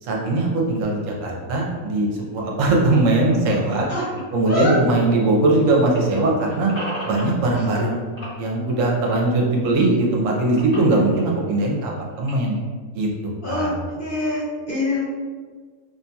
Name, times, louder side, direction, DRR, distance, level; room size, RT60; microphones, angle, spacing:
voice 1, 0.0-3.9 4.3-6.7 7.0-8.0 8.4-12.6 12.9-13.7, right 2 dB, 70° right, -1 dB, 1.0 m, -20 dB
sound 1, 0.8-5.6 5.8-7.9 8.2-9.6 9.9-12.6, equal, 20° left, 1.2 m, -39 dB
voice 2, 4.4-4.8 7.7-7.9 13.4-13.7 14.0-15.0, left 2 dB, 50° left, -7 dB, 0.7 m, -24 dB
2.8 x 2.7 x 2.2 m, 1.5 s
omnidirectional pair, 1.5 m